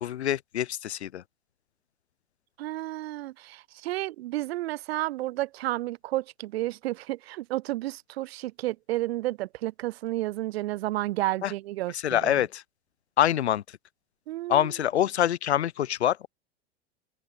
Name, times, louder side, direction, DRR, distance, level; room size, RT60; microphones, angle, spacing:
voice 1, 0.0-1.2 11.4-11.5 11.9-12.6 13.2-13.8 14.5-16.3, left 11 dB, 80° left, 0.9 m, -25 dB
voice 2, 2.6-12.3 14.3-14.7, right 17 dB, 65° right, 0.5 m, -31 dB
open air
figure-of-eight pair, 80°, 33 cm